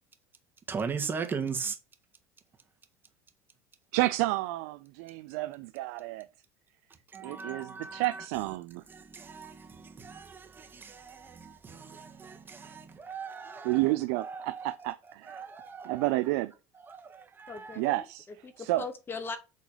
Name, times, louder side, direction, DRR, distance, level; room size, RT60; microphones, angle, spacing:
voice 1, 0.7-1.8 7.1-8.2 8.9-14.9 15.2-16.1 16.8-17.8, right 5 dB, 25° right, 1.7 m, -39 dB
voice 2, 3.9-6.2 7.2-8.8 13.6-15.5 15.8-16.5 17.8-18.2 18.6-18.9, right 18 dB, 75° right, 0.5 m, -30 dB
voice 3, 17.5-19.4, left 4 dB, 25° left, 1.2 m, -40 dB
7.5 x 3.8 x 5.0 m
supercardioid pair, 105°, 8 cm